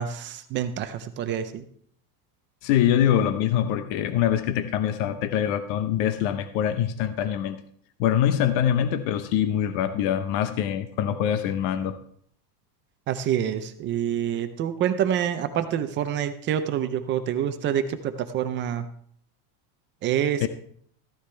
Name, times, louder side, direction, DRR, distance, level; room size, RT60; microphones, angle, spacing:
voice 1, 0.0-1.6 13.1-18.9 20.0-20.5, right 9 dB, 25° right, 9 dB, 0.5 m, -27 dB
voice 2, 2.6-7.6 8.0-12.0 20.4-20.5, left 10 dB, 55° left, 10 dB, 0.8 m, -24 dB
14.5 x 10.0 x 3.3 m, 0.62 s
cardioid pair, 170°, 47 cm